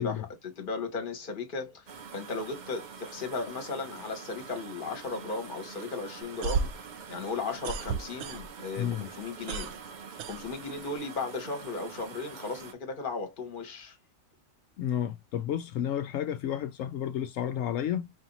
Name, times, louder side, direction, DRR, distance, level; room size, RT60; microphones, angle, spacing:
voice 1, 0.0-9.7 10.2-14.0, left 4 dB, 45° left, 1.2 m, -36 dB
sound 1, 1.9-12.7, right 6 dB, 45° right, 0.6 m, -46 dB
sound 2, 6.2-8.8 9.1-11.0, right 5 dB, 70° right, 0.9 m, -34 dB
voice 2, 8.8-9.1 14.8-18.1, left 10 dB, 80° left, 1.0 m, -31 dB
4.8 x 2.6 x 2.9 m
omnidirectional pair, 1.4 m